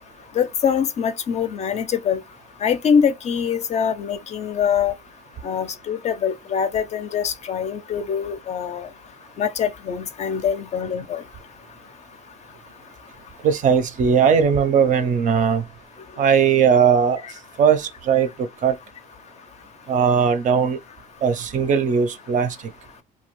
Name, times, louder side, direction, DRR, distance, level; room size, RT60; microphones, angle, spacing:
voice 1, 0.4-2.2 2.6-4.9 5.4-8.9 9.4-11.2, left 7 dB, 40° left, 0.4 m, -23 dB
voice 2, 13.4-15.6 16.2-17.2 17.6-18.8 19.9-20.8 21.2-22.6, right 7 dB, 50° right, 0.5 m, -18 dB
2.7 x 2.0 x 3.0 m
cardioid pair, 110°, 17 cm